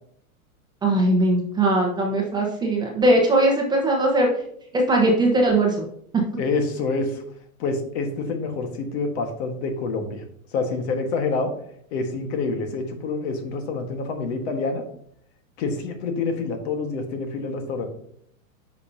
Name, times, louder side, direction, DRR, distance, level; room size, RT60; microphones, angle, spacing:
voice 1, 0.8-4.3 4.7-5.8 6.1-6.2, right 1 dB, 10° right, -1 dB, 1.0 m, -20 dB
voice 2, 6.4-7.2 7.6-10.2 10.5-11.5 11.9-14.8 15.6-17.9, left 3 dB, 50° left, 5 dB, 1.5 m, -27 dB
9.8 x 5.5 x 2.8 m, 0.67 s
supercardioid pair, 155°, 43 cm